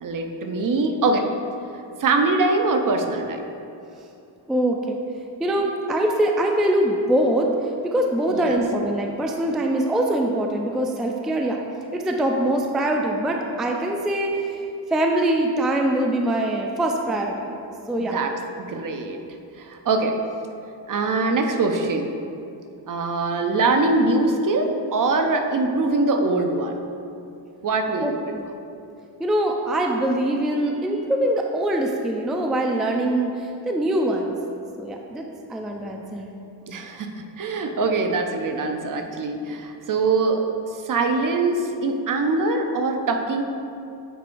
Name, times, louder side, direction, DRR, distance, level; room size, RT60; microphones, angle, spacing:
voice 1, 0.0-1.3 2.0-3.4 8.3-8.5 18.0-18.3 18.6-19.2 19.6-20.1 20.9-22.1 22.9-26.8 27.6-28.3 36.7-40.4 40.8-43.4, right 3 dB, 45° right, 4 dB, 0.6 m, -23 dB
voice 2, 4.5-5.0 5.4-11.6 11.9-17.6 17.9-18.2 28.0-28.5 29.2-34.4 34.8-36.3, right 1 dB, ahead, 1 dB, 0.3 m, -23 dB
8.9 x 4.5 x 2.6 m, 2.6 s
cardioid pair, 95°, 44 cm